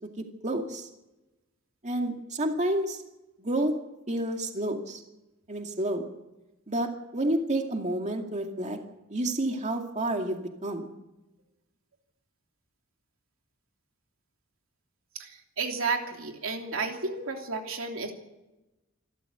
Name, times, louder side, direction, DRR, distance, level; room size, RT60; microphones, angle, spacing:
voice 1, 0.4-0.9 1.8-3.0 3.4-3.7 4.1-5.0 5.5-6.0 6.7-8.8 9.1-10.9, right 1 dB, 35° right, 3 dB, 2.3 m, -29 dB
voice 2, 15.1-18.1, right 4 dB, 90° right, 3 dB, 3.0 m, -32 dB
27.0 x 13.0 x 8.0 m, 0.99 s
head